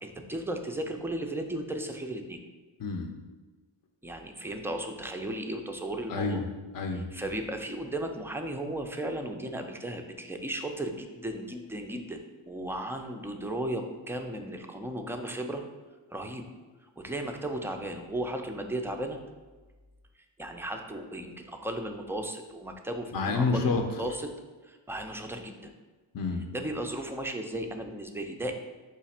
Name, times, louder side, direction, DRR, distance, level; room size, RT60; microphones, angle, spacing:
voice 1, 0.0-2.4 4.0-6.4 7.1-12.2 12.5-15.6 16.1-16.5 17.0-19.2 20.4-24.3 24.6-25.7 26.5-28.5, right 1 dB, 5° right, 4 dB, 0.3 m, -35 dB
voice 2, 2.8-3.1 6.1-6.4 6.7-7.1 23.1-23.8 26.1-26.5, left 4 dB, 45° left, 4 dB, 0.6 m, -28 dB
5.1 x 2.4 x 4.1 m, 1.3 s
cardioid pair, 70°, 47 cm